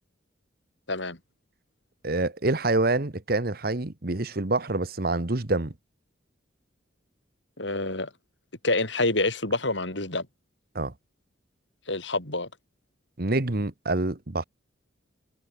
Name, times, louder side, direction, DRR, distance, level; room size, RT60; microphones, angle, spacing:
voice 1, 2.0-5.7 10.7-10.9 13.2-14.4, right 2 dB, 50° right, 1.3 m, -26 dB
voice 2, 7.6-8.1 8.6-10.3 11.9-12.5, left 2 dB, 75° left, 8.0 m, -27 dB
head